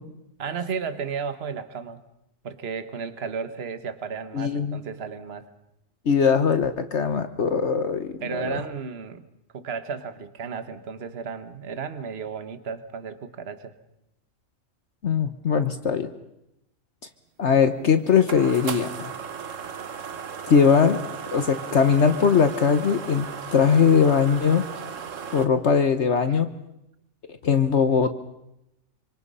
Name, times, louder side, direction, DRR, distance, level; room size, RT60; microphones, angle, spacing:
voice 1, 0.4-2.0 2.4-5.5 8.2-9.3 9.5-13.7 20.6-20.9, right 6 dB, 50° right, 11 dB, 1.5 m, -33 dB
voice 2, 4.3-4.8 6.0-8.6 15.0-16.1 17.4-19.1 20.5-21.0 21.3-24.6 25.3-26.5 27.4-28.1, left 6 dB, 60° left, 9 dB, 1.3 m, -20 dB
sound 1, 17.5-25.5, right 7 dB, 70° right, 1.6 m, -36 dB
26.5 x 25.5 x 5.5 m, 0.85 s
omnidirectional pair, 1.4 m